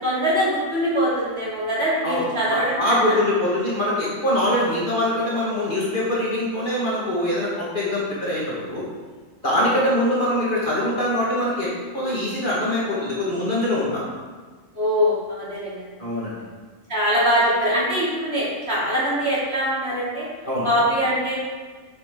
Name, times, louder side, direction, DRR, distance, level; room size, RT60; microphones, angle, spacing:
voice 1, 0.0-3.2 9.4-9.8 14.7-15.8 16.9-20.3 20.6-21.3, equal, 45° right, -9 dB, 3.3 m, -23 dB
voice 2, 2.5-8.8 9.4-11.7 11.9-14.0 16.0-16.4 20.4-20.7, left 1 dB, 35° left, -7 dB, 2.0 m, -23 dB
8.8 x 6.6 x 3.8 m, 1.4 s
omnidirectional pair, 1.6 m